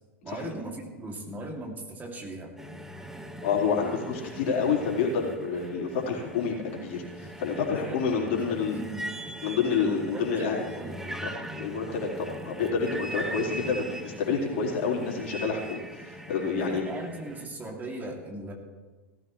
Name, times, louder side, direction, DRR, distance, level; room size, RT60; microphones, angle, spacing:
voice 1, 0.2-2.5 7.7-8.0 8.3-9.1 9.8-11.3 16.6-18.5, right 2 dB, 25° right, 1 dB, 2.6 m, -39 dB
sound 1, 2.6-17.5, right 1 dB, 5° right, 1.4 m, -41 dB
voice 2, 3.4-8.8 9.4-10.6 11.2-16.8, left 5 dB, 65° left, -3 dB, 4.0 m, -28 dB
17.5 x 14.5 x 3.2 m, 1.3 s
hypercardioid pair, 90°, 7 cm